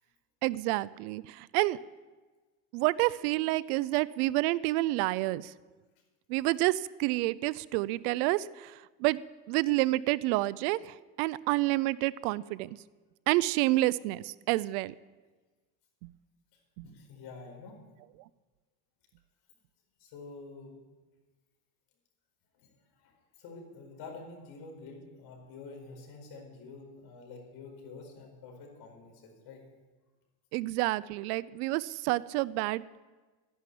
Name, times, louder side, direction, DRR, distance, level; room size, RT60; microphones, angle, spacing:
voice 1, 0.4-1.8 2.7-5.5 6.3-12.8 13.3-14.9 16.0-16.1 16.8-16.9 30.5-32.8, right 19 dB, 90° right, 20 dB, 0.6 m, -29 dB
voice 2, 16.8-17.8 20.0-20.8 22.6-22.7 23.0-29.6, left 4 dB, 60° left, 2 dB, 4.8 m, -48 dB
12.5 x 11.0 x 8.5 m, 1.3 s
cardioid pair, 135°, 43 cm